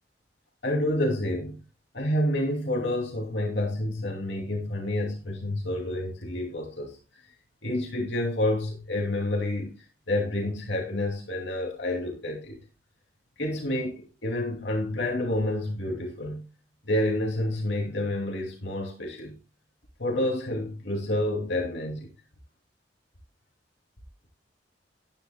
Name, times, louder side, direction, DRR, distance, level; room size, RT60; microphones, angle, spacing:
voice 1, 0.6-1.6 1.9-7.0 7.6-9.7 10.1-12.6 13.4-16.5 16.9-19.3 20.0-22.1, left 1 dB, 80° left, 2.6 m, -29 dB
14.0 x 10.5 x 2.2 m
head